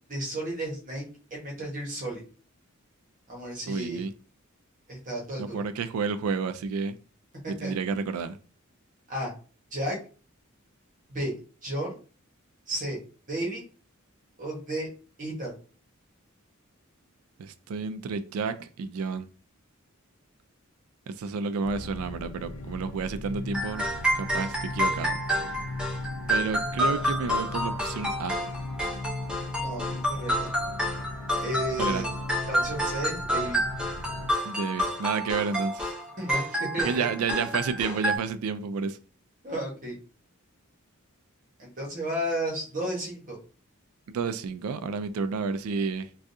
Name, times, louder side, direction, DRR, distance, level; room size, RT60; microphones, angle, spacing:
voice 1, 0.1-1.0 1.3-2.2 3.3-4.0 4.9-5.6 7.6-7.7 9.1-9.3 9.7-10.0 11.1-11.3 11.6-12.0 12.7-13.0 13.3-13.6 14.4-14.9 15.2-15.5 29.5-30.5 31.4-32.1 32.4-33.6 36.2-37.4 39.4-40.0 41.6-43.4, right 1 dB, 40° right, 1.1 m, -33 dB
voice 2, 3.7-4.1 5.4-7.0 7.5-8.4 17.4-19.3 21.1-23.9 24.1-25.2 26.3-28.4 31.8-32.0 34.4-35.9 36.8-39.0 44.1-46.2, right 5 dB, 80° right, 0.3 m, -30 dB
sound 1, 21.6-34.3, left 2 dB, 80° left, 0.5 m, -38 dB
sound 2, 23.5-38.2, equal, 5° right, 0.7 m, -29 dB
3.5 x 2.3 x 2.6 m
head